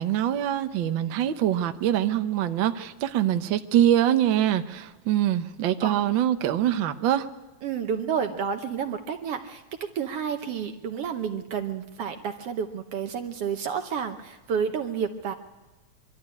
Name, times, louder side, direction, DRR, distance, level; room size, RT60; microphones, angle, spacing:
voice 1, 0.0-7.3, right 11 dB, 80° right, 8 dB, 1.0 m, -24 dB
voice 2, 7.6-9.6 9.9-15.3, right 7 dB, 65° right, 6 dB, 1.7 m, -30 dB
23.5 x 12.5 x 9.6 m, 1.2 s
omnidirectional pair, 3.4 m